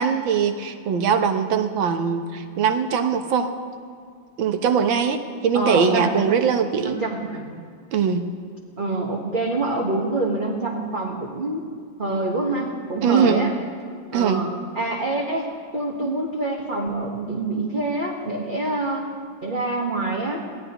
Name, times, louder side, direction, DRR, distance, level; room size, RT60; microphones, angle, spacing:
voice 1, 0.0-3.5 4.4-7.0 7.9-8.2 13.0-13.5 14.1-14.5 16.0-16.1, right 6 dB, 85° right, 7 dB, 1.8 m, -21 dB
voice 2, 5.5-6.4 6.8-7.6 8.8-11.7 12.0-13.5 14.1-14.5 14.7-19.1 19.4-20.5, right 2 dB, 30° right, -2 dB, 1.3 m, -26 dB
23.5 x 16.5 x 3.0 m, 2.2 s
omnidirectional pair, 2.1 m